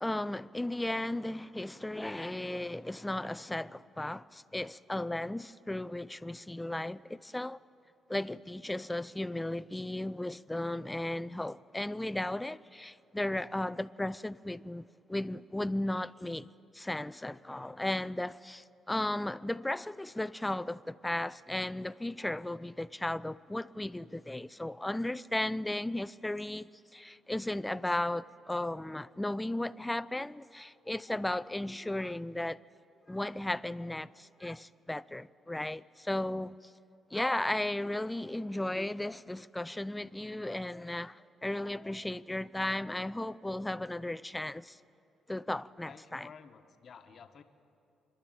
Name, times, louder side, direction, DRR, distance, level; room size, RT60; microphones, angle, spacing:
voice 1, 0.0-7.6 8.1-16.5 16.7-32.6 33.1-36.6 37.1-44.8 45.3-46.3, left 1 dB, 10° left, 0.4 m, -35 dB
voice 2, 45.8-47.4, left 6 dB, 55° left, 1.2 m, -52 dB
26.5 x 11.5 x 8.9 m
cardioid pair, 90°, 0 cm